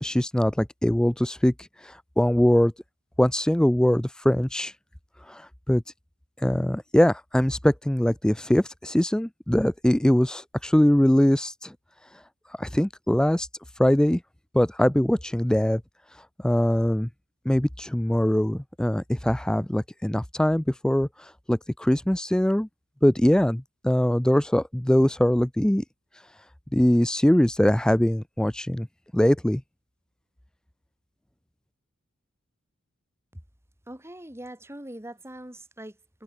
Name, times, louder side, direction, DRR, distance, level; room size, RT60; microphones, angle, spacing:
voice 1, 0.0-1.5 1.8-2.7 3.2-4.7 5.3-5.4 5.7-5.8 6.4-11.7 12.6-13.5 13.8-14.2 14.5-15.8 16.4-17.1 17.5-21.1 21.5-22.7 23.0-25.8 26.7-28.9 29.1-29.6, equal, 5° left, 0.3 m, -22 dB
voice 2, 33.9-36.2, right 1 dB, 15° right, 3.4 m, -42 dB
head